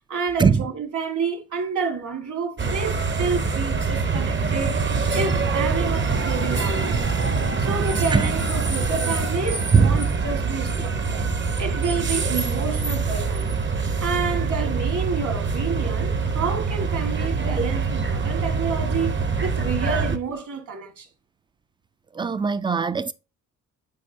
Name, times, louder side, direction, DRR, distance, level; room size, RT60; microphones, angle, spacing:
voice 1, 0.1-4.8 5.1-7.0 7.6-11.3 11.6-13.5 14.0-21.1, right 5 dB, 60° right, 1.9 m, -29 dB
sound 1, 2.6-20.2, right 4 dB, 35° right, 0.8 m, -24 dB
voice 2, 9.7-10.0 22.1-23.1, right 5 dB, 15° right, 0.3 m, -19 dB
8.3 x 4.4 x 2.8 m
cardioid pair, 75°, 35 cm